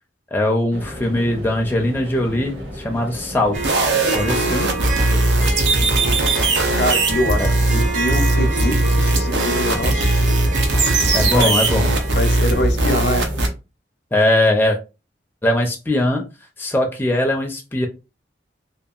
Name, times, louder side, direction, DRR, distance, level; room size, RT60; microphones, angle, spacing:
voice 1, 0.3-3.8 4.1-4.7 7.4-7.5 11.1-11.9 14.1-14.8 15.4-16.2 16.6-17.9, left 1 dB, 10° left, 0.4 m, -20 dB
sound 1, 0.7-13.5, equal, 65° right, 1.0 m, -34 dB
Harp, 3.5-12.6, right 3 dB, 45° right, 0.6 m, -28 dB
sound 2, 3.6-13.5, right 2 dB, 85° right, 0.7 m, -19 dB
voice 2, 6.7-10.3 11.1-11.6 12.1-13.3, left 1 dB, 65° left, 0.5 m, -24 dB
2.7 x 2.4 x 2.3 m
head